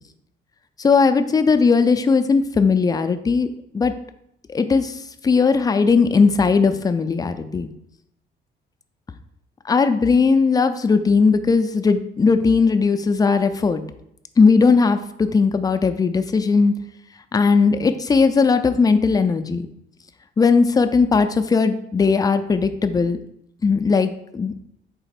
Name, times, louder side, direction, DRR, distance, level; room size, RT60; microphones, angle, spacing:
voice 1, 0.8-3.5 3.7-3.9 4.5-7.7 9.6-13.8 14.4-16.7 17.3-19.7 20.4-23.2 23.6-24.7, left 4 dB, 20° left, 9 dB, 0.3 m, -18 dB
4.0 x 2.9 x 4.3 m, 0.76 s
cardioid pair, 90°, 20 cm